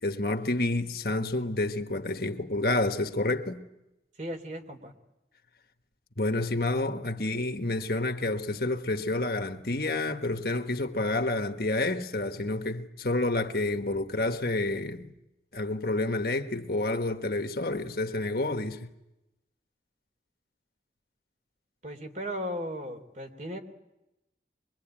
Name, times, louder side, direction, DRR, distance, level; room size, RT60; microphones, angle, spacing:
voice 1, 0.0-3.6 6.2-15.1 15.5-18.9, left 2 dB, 55° left, 1.4 m, -29 dB
voice 2, 4.2-4.9 21.8-23.6, equal, 45° right, 3.2 m, -36 dB
23.5 x 23.5 x 8.9 m
head